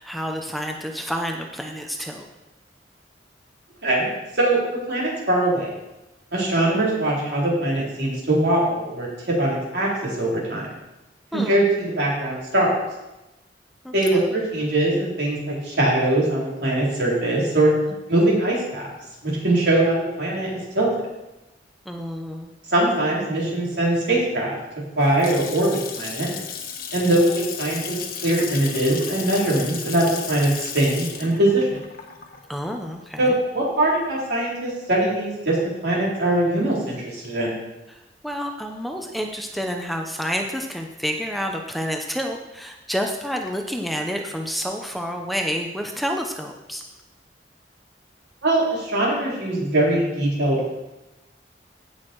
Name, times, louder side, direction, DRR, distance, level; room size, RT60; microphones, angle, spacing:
voice 1, 0.0-2.3 11.3-11.6 13.8-14.3 18.2-18.3 21.9-22.5 32.5-33.4 37.9-46.8, equal, ahead, 2 dB, 0.7 m, -29 dB
voice 2, 3.8-5.7 6.3-10.7 11.3-12.7 13.9-17.7 18.1-18.9 19.2-20.9 22.7-24.6 25.0-26.3 26.9-28.0 28.2-31.8 33.2-37.5 48.4-50.7, right 1 dB, 65° right, -5 dB, 4.1 m, -22 dB
Water tap faucet / Sink (filling or washing) / Splash splatter, 24.8-33.6, left 7 dB, 55° left, 1.4 m, -34 dB
16.5 x 6.3 x 4.7 m, 1.0 s
head